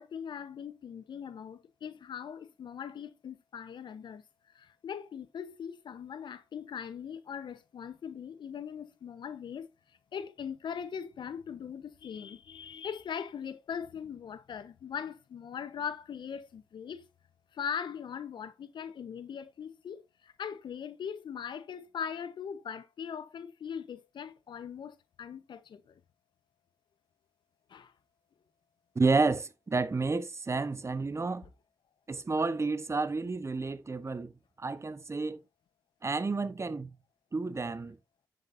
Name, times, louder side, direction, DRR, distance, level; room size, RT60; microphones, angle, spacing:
voice 1, 0.0-4.2 4.5-9.7 10.1-17.0 17.5-26.0 27.7-27.9, left 7 dB, 70° left, 1.2 m, -40 dB
voice 2, 28.9-31.5 32.1-34.3 34.6-35.4 36.0-36.9 37.3-38.0, right 3 dB, 35° right, 1.2 m, -30 dB
10.0 x 8.0 x 2.7 m
cardioid pair, 55°, 8 cm